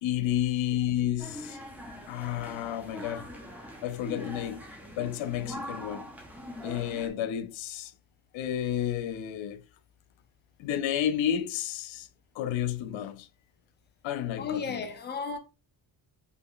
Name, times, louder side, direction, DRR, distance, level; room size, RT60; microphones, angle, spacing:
voice 1, 0.0-1.6 2.1-3.3 3.8-4.6 5.0-6.0 6.6-7.9 8.3-9.6 10.6-12.1 12.3-13.3 14.0-14.8, left 11 dB, 90° left, 0.6 m, -31 dB
sound 1, 1.2-7.1, equal, 5° right, 1.0 m, -42 dB
voice 2, 14.4-15.4, left 5 dB, 20° left, 0.7 m, -34 dB
5.3 x 4.1 x 2.2 m
cardioid pair, 175°, 45 cm